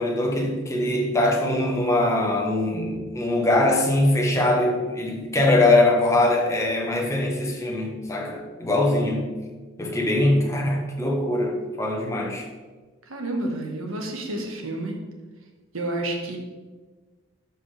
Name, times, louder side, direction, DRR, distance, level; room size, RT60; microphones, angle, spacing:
voice 1, 0.0-9.3 9.8-12.5, left 1 dB, 15° left, 0 dB, 1.1 m, -22 dB
voice 2, 13.0-15.0 15.7-16.4, right 1 dB, 90° right, 2 dB, 1.5 m, -29 dB
12.0 x 5.5 x 3.4 m, 1.3 s
head